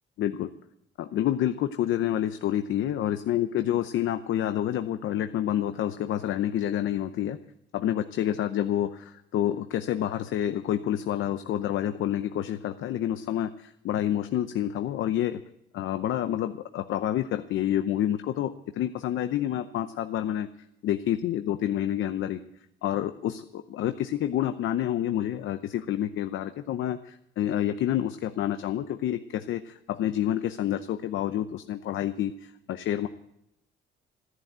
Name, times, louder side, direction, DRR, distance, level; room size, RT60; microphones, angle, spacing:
voice 1, 0.2-0.5 1.0-7.4 7.7-15.4 15.7-20.5 20.8-22.4 22.8-33.1, left 11 dB, 80° left, 9 dB, 0.7 m, -28 dB
14.0 x 11.0 x 7.9 m, 0.80 s
cardioid pair, 90°, 20 cm